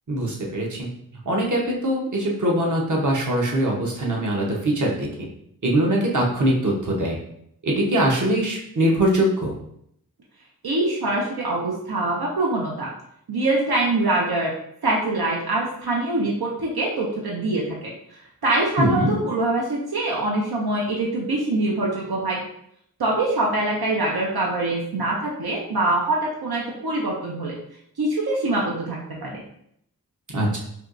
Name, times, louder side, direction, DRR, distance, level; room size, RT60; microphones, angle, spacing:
voice 1, 0.1-0.9 1.3-5.1 5.6-7.2 7.6-9.5 18.8-19.1 30.3-30.6, right 1 dB, 55° right, -2 dB, 0.9 m, -22 dB
voice 2, 10.6-12.9 13.3-14.5 14.8-17.9 18.4-22.4 23.0-27.5 28.0-29.4, right 2 dB, 80° right, -3 dB, 0.6 m, -24 dB
4.4 x 2.3 x 2.5 m, 0.72 s
wide cardioid pair, 50°, 37 cm